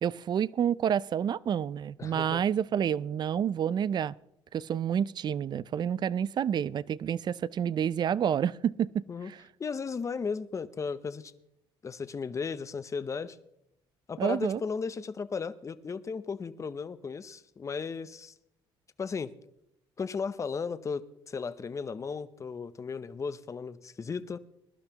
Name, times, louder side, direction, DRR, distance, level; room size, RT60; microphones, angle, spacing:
voice 1, 0.0-4.1 4.5-9.4 14.2-14.6, right 8 dB, 45° right, 0.4 m, -29 dB
voice 2, 2.0-2.4 9.1-9.3 9.6-11.3 11.8-13.4 14.1-18.3 19.0-19.3 20.0-24.4, left 5 dB, 30° left, 0.7 m, -35 dB
21.0 x 12.0 x 2.9 m
cardioid pair, 95°, 10 cm